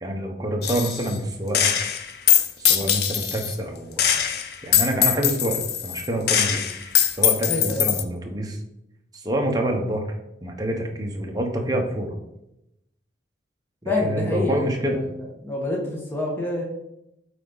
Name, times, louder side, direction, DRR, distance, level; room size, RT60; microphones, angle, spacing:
voice 1, 0.0-1.7 2.6-4.2 4.6-8.6 9.1-10.1 10.4-12.2 13.8-15.0, right 1 dB, 20° right, 1 dB, 1.0 m, -27 dB
Gunshot gunfire, 0.6-1.2 1.5-3.6 4.0-8.0, left 9 dB, 55° left, 0.6 m, -22 dB
voice 2, 7.5-7.9 13.8-15.2 15.4-16.6, left 2 dB, 10° left, -2 dB, 1.2 m, -27 dB
8.3 x 4.1 x 4.0 m, 0.84 s
head